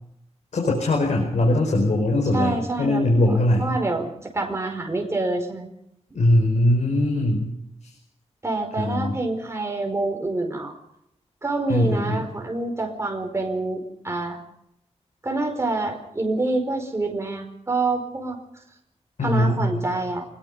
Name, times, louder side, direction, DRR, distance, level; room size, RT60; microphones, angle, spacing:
voice 1, 0.5-3.7 6.1-7.5 7.8-7.9 8.8-9.2 11.7-12.2 19.2-19.8, left 1 dB, 80° left, 1 dB, 5.0 m, -21 dB
voice 2, 2.3-3.3 3.6-5.7 8.4-10.8 11.4-14.4 15.2-18.4 19.2-20.3, right 2 dB, 25° right, 3 dB, 4.9 m, -26 dB
25.5 x 21.0 x 5.5 m, 0.77 s
wide cardioid pair, 130°, 12 cm